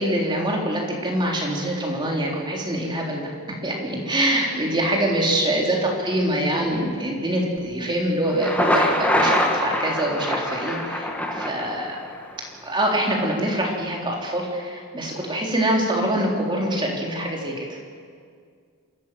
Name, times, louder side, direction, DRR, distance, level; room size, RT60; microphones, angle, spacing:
voice 1, 0.0-3.3 3.6-12.0 12.6-17.8, right 1 dB, 20° right, -2 dB, 3.7 m, -24 dB
Thunder, 8.2-12.2, left 1 dB, 5° left, 1.9 m, -24 dB
27.5 x 14.5 x 7.7 m, 2.1 s
head